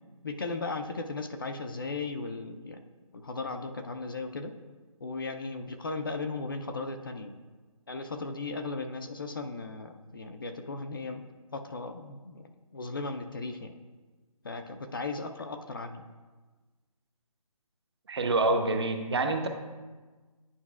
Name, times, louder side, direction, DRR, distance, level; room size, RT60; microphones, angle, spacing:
voice 1, 0.2-2.8 3.1-4.5 5.0-7.3 7.9-13.7 14.4-16.0, left 3 dB, 40° left, 6 dB, 0.4 m, -36 dB
voice 2, 18.1-19.5, right 2 dB, 45° right, 6 dB, 0.7 m, -26 dB
9.6 x 5.3 x 2.3 m, 1.3 s
figure-of-eight pair, 160°, 18 cm